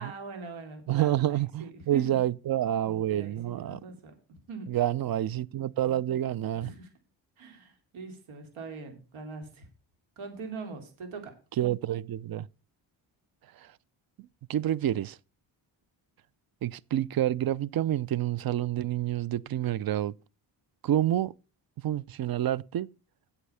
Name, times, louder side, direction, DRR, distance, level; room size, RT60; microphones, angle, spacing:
voice 1, 0.0-1.2 1.6-2.2 3.1-4.1 4.5-4.7 6.6-6.9 7.4-9.7 10.2-11.3, right 4 dB, 85° right, 2.8 m, -41 dB
voice 2, 0.9-3.8 4.7-6.7 11.6-12.5 13.6-13.7 14.2-15.2 16.6-20.1 20.8-21.3 21.8-22.9, right 12 dB, 50° right, 0.5 m, -28 dB
8.2 x 7.2 x 5.6 m
cardioid pair, 85°, 47 cm